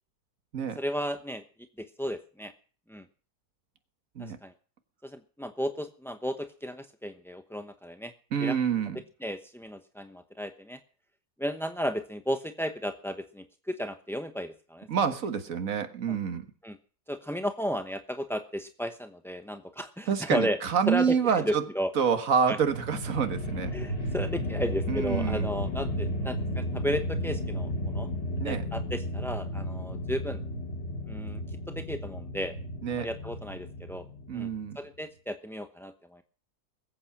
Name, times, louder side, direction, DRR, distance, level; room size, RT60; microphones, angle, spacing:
voice 1, 0.8-1.4 1.8-2.5 2.9-3.0 4.2-4.5 5.0-8.1 8.4-8.6 9.2-10.8 11.4-14.9 16.1-16.2 16.6-16.8 17.1-20.6 20.9-21.9 22.5-22.6 23.7-28.1 28.4-30.4 31.1-31.4 31.7-32.6 32.9-34.1 34.3-34.5 34.8-36.2, equal, 5° left, 7 dB, 0.5 m, -34 dB
voice 2, 8.3-9.0 14.9-16.5 20.1-21.7 22.0-23.8 24.9-25.5 28.4-28.6 32.8-33.1 34.3-34.8, right 7 dB, 55° right, 9 dB, 1.9 m, -27 dB
sound 1, 22.4-34.7, equal, 70° left, 3.1 m, -33 dB
20.5 x 8.6 x 5.9 m, 0.42 s
omnidirectional pair, 1.7 m